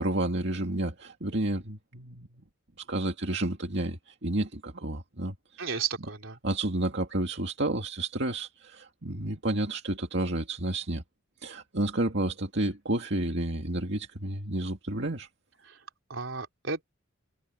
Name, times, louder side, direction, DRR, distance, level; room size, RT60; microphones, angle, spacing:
voice 1, 0.0-2.3 2.8-5.8 6.4-11.0 11.4-15.3, right 2 dB, 60° right, 2.2 m, -31 dB
voice 2, 5.6-6.4 16.1-16.8, right 5 dB, 75° right, 3.8 m, -33 dB
head